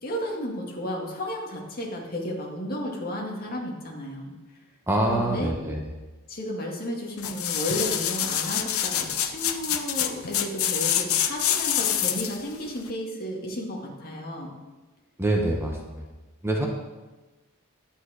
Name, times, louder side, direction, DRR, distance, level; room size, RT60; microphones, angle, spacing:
voice 1, 0.0-4.3 5.1-5.5 6.3-14.5, equal, 45° left, 0 dB, 2.0 m, -33 dB
voice 2, 4.9-5.8 15.2-16.0 16.4-16.7, right 1 dB, 10° right, 0 dB, 1.3 m, -25 dB
sound 1, 7.2-12.4 12.9-13.0, left 10 dB, 65° left, 0.8 m, -26 dB
11.0 x 8.9 x 5.0 m, 1.2 s
head